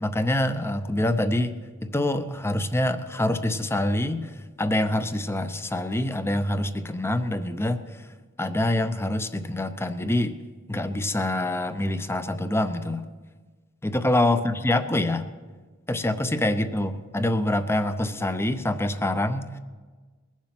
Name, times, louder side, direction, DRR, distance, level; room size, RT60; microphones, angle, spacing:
voice 1, 0.0-1.5 1.8-4.3 4.6-7.8 8.4-10.3 10.7-13.0 13.8-15.3 15.9-19.5, left 1 dB, 10° left, 11 dB, 0.6 m, -25 dB
21.0 x 7.4 x 5.9 m, 1.4 s
head